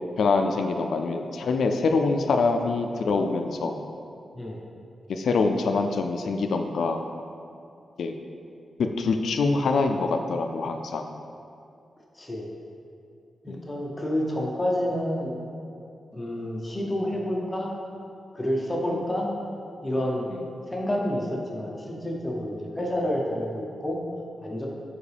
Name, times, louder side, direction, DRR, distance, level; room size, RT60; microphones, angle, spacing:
voice 1, 0.2-3.8 5.1-7.0 8.0-8.1 8.8-11.1 13.5-13.7 18.9-19.0 20.3-20.4, left 4 dB, 70° left, 5 dB, 0.3 m, -25 dB
voice 2, 12.1-12.5 13.4-15.3 16.1-17.7 18.3-19.3 19.8-20.3 20.7-24.0 24.4-24.7, left 1 dB, 15° left, -2 dB, 0.7 m, -29 dB
7.3 x 4.6 x 3.4 m, 2.5 s
wide cardioid pair, 170°, 0 cm